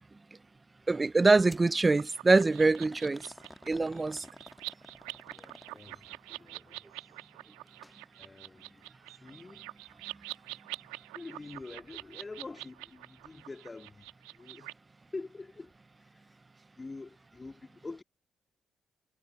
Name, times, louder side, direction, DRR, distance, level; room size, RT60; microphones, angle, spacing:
voice 1, 0.9-3.2 3.7-4.2, right 3 dB, 30° right, 0.3 m, -24 dB
sound 1, 1.5-1.7 2.4-6.1 7.7-8.0 8.3-8.4 9.3-9.4, left 1 dB, 5° left, 1.4 m, -52 dB
sound 2, 2.0-14.7, right 22 dB, 80° right, 1.2 m, -46 dB
voice 2, 5.3-7.3 8.2-8.8 9.1-9.7 11.1-14.1 14.3-14.8 15.1-15.7 16.0-16.4 16.8-18.0, left 3 dB, 30° left, 2.2 m, -46 dB
hypercardioid pair, 40°, 0 cm